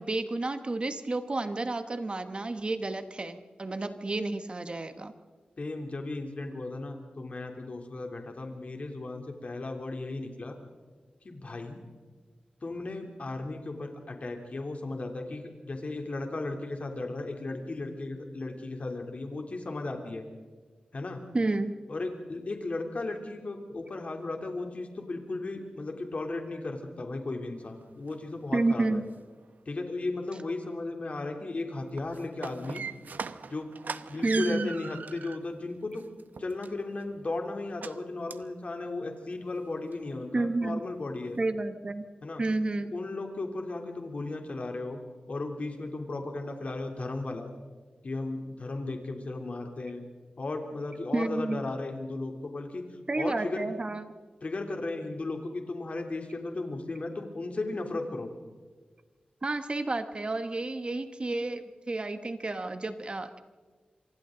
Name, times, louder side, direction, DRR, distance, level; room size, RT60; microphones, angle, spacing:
voice 1, 0.0-5.1 21.3-21.7 28.5-29.1 34.2-34.7 40.3-40.8 41.4-42.0 42.4-42.9 51.1-51.7 53.1-54.1 59.4-63.4, right 2 dB, 35° right, 9 dB, 1.2 m, -30 dB
voice 2, 5.6-10.6 11.2-11.8 12.6-20.2 20.9-21.2 21.9-29.0 29.6-32.8 33.5-33.7 34.1-36.0 36.4-41.4 42.2-42.4 42.9-45.0 45.3-47.5 48.0-50.0 50.4-52.8 53.2-53.7 54.4-58.3, left 2 dB, 50° left, 3 dB, 3.2 m, -35 dB
sound 1, 27.6-27.7 28.1-28.2 28.5-29.2 31.8-35.4 35.9-37.0 37.8-38.0 38.3-38.5 38.9-39.0 39.3-39.4 39.9-40.0, right 5 dB, 80° right, 0.8 m, -39 dB
27.5 x 25.0 x 3.9 m, 1.4 s
wide cardioid pair, 115°, 3 cm